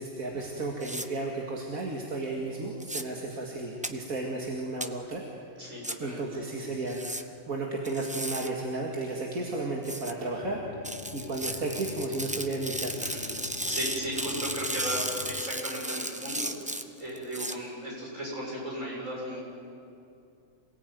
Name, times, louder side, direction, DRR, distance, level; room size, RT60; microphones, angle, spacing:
voice 1, 0.0-5.2 5.7-7.1 7.5-10.6 11.1-13.0, right 2 dB, 90° right, -1 dB, 2.6 m, -33 dB
sound 1, 0.8-1.1 2.8-3.0 3.8-3.9 4.8-4.9 5.8-5.9 6.9-7.2 7.9-8.5 9.8-10.1 10.8-17.5, right 1 dB, 5° right, 0.8 m, -35 dB
voice 2, 5.6-6.2 13.0-13.3 13.7-19.4, right 1 dB, 70° right, -3 dB, 7.7 m, -36 dB
sound 2, 10.4-15.4, left 7 dB, 50° left, 0.8 m, -44 dB
27.0 x 18.0 x 9.4 m, 2.6 s
omnidirectional pair, 1.4 m